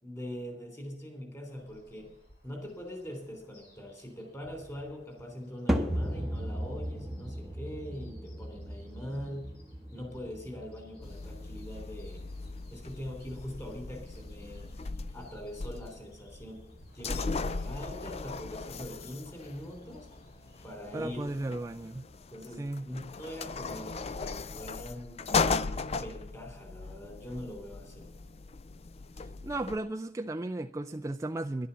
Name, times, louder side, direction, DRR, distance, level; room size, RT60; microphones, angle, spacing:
voice 1, 0.0-2.1 2.4-9.6 9.9-12.3 12.7-14.7 15.1-16.7 16.9-20.1 20.6-21.3 22.3-25.2 25.9-28.1, equal, 15° left, 3.2 m, -42 dB
sound 1, 1.5-20.7, equal, 65° left, 4.9 m, -61 dB
sound 2, 5.7-22.1, equal, ahead, 1.0 m, -39 dB
sound 3, 11.0-29.8, left 4 dB, 35° left, 0.5 m, -37 dB
voice 2, 20.9-22.1 22.6-22.9 29.4-31.7, right 2 dB, 15° right, 0.4 m, -35 dB
11.0 x 11.0 x 6.9 m
head